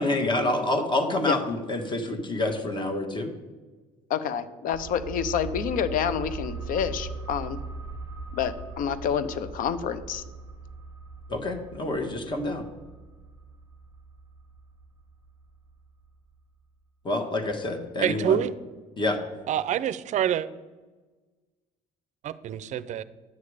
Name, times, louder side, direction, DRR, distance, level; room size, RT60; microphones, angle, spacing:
voice 1, 0.0-3.3 11.3-12.6 17.0-18.4 19.0-19.2, left 2 dB, 30° left, 4 dB, 1.4 m, -27 dB
voice 2, 4.1-7.6 8.3-10.2, left 8 dB, 60° left, 13 dB, 0.7 m, -28 dB
sound 1, 4.7-16.1 16.4-16.5, right 4 dB, 20° right, 1.2 m, -40 dB
voice 3, 18.0-18.5 19.5-20.5 22.2-23.0, right 10 dB, 50° right, 16 dB, 0.5 m, -26 dB
9.6 x 6.6 x 4.9 m, 1.3 s
supercardioid pair, 90°, 16 cm